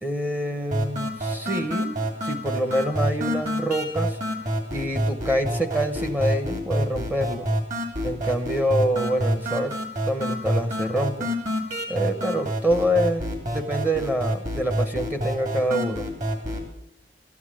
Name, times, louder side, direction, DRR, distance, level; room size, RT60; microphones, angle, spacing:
voice 1, 0.0-1.9 2.2-4.2 4.7-7.5 8.0-9.8 10.1-11.3 11.9-16.1, equal, 10° right, 9 dB, 0.8 m, -26 dB
sound 1, 0.7-16.7, equal, 45° right, 2.6 m, -28 dB
14.0 x 9.6 x 7.5 m, 0.76 s
head